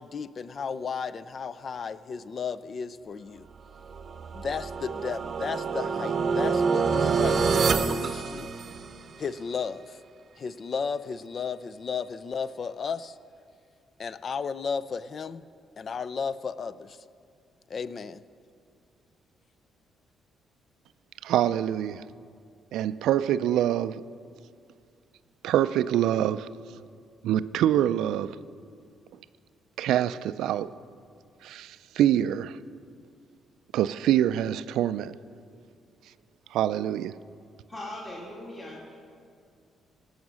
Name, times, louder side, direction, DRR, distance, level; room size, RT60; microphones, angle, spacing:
voice 1, 0.0-3.5 4.3-8.5 9.2-10.0 10.4-13.2 14.0-15.4 15.8-17.0 17.7-18.2, left 5 dB, 45° left, 0.5 m, -34 dB
sound 1, 3.9-9.1, right 5 dB, 50° right, 0.7 m, -27 dB
voice 2, 21.2-22.1 22.7-24.0 25.4-26.5 27.2-28.4 29.8-30.7 31.4-32.6 33.7-35.1 36.5-37.2, right 11 dB, 85° right, 0.3 m, -25 dB
voice 3, 37.7-39.1, left 1 dB, 25° left, 2.6 m, -40 dB
18.0 x 6.4 x 6.2 m
cardioid pair, 90°, 0 cm